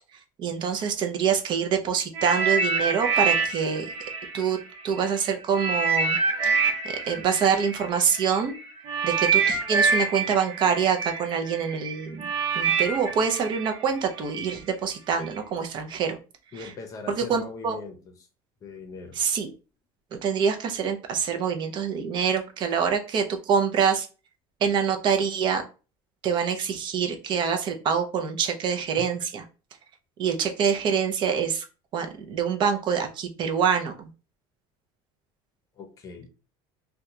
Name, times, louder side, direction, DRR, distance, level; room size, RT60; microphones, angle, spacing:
voice 1, 0.4-3.9 4.3-4.6 4.8-6.2 6.4-8.6 9.0-16.2 16.6-16.7 17.1-17.8 19.2-19.5 20.2-24.1 24.6-25.6 26.2-29.4 30.2-31.7 31.9-34.1, right 7 dB, 40° right, 5 dB, 0.6 m, -25 dB
sound 1, 2.1-5.1 5.5-14.5 15.2-15.4, right 5 dB, 60° right, 0.9 m, -26 dB
voice 2, 16.5-18.0 18.6-19.2 29.0-29.1 35.8-36.3, left 4 dB, 30° left, 4 dB, 0.7 m, -40 dB
2.8 x 2.2 x 3.7 m, 0.34 s
cardioid pair, 150°, 12 cm